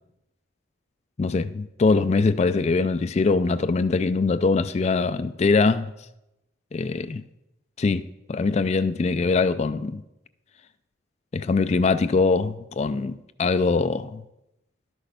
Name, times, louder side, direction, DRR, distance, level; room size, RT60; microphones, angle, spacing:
voice 1, 1.2-5.9 6.7-7.2 7.8-10.0 11.3-14.2, left 4 dB, 35° left, 0.3 m, -22 dB
12.0 x 6.2 x 6.6 m
head